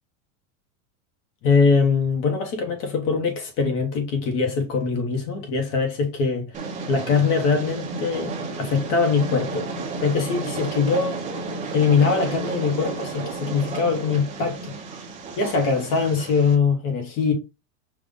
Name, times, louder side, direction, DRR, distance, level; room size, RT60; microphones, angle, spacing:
voice 1, 1.4-9.7 10.0-11.2 11.7-14.7 15.4-17.3, left 5 dB, 35° left, 0.9 m, -22 dB
Train, 6.5-16.5, right 3 dB, 15° right, 0.8 m, -32 dB
5.4 x 2.4 x 3.5 m
supercardioid pair, 165°, 42 cm